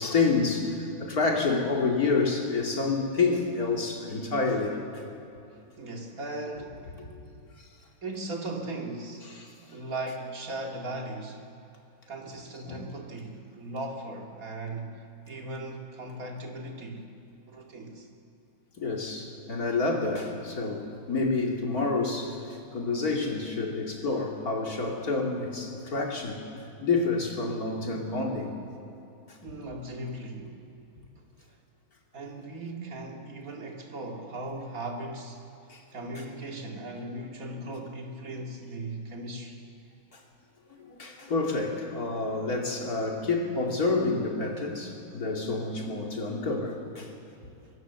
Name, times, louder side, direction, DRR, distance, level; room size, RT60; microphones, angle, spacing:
voice 1, 0.0-5.0 7.0-7.1 7.6-7.7 12.7-12.8 18.8-22.4 22.7-26.4 26.8-28.7 29.3-29.4 35.7-35.8 40.1-40.2 40.8-47.1, left 3 dB, 45° left, 0 dB, 3.1 m, -28 dB
voice 2, 5.8-6.9 8.0-9.3 9.6-11.4 12.1-15.0 15.3-17.1 17.5-18.1 29.4-30.6 32.1-35.5 35.9-39.6, right 2 dB, 45° right, 1 dB, 2.7 m, -38 dB
24.5 x 19.0 x 7.1 m, 2.8 s
omnidirectional pair, 2.2 m